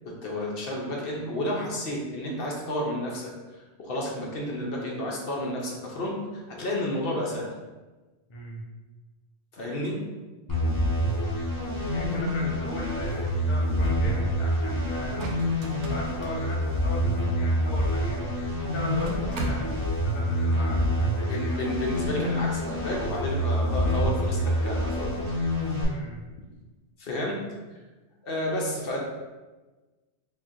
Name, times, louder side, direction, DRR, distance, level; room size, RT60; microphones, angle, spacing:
voice 1, 0.0-7.5 9.5-10.0 11.7-11.9 21.3-25.2 27.0-27.4 28.2-29.0, left 1 dB, 60° left, -2 dB, 0.8 m, -31 dB
voice 2, 8.3-8.6 11.9-15.3 15.9-21.6 25.8-26.2, left 1 dB, 35° left, -3 dB, 0.5 m, -38 dB
sound 1, 10.5-25.8, equal, 20° left, 1.0 m, -27 dB
sound 2, 14.0-14.6 14.9-17.1 18.0-18.1 18.3-18.4 18.8-20.1, right 1 dB, 90° right, 0.9 m, -35 dB
4.1 x 2.9 x 2.5 m, 1.2 s
omnidirectional pair, 1.2 m